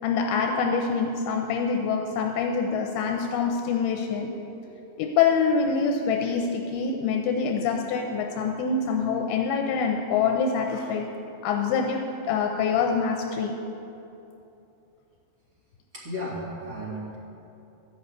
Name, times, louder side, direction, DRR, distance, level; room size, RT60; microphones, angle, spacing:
voice 1, 0.0-4.3 5.0-11.1 11.4-13.6, left 5 dB, 85° left, 3 dB, 2.5 m, -25 dB
voice 2, 15.9-17.2, equal, 30° right, -6 dB, 1.8 m, -34 dB
13.5 x 5.6 x 8.1 m, 2.9 s
omnidirectional pair, 4.5 m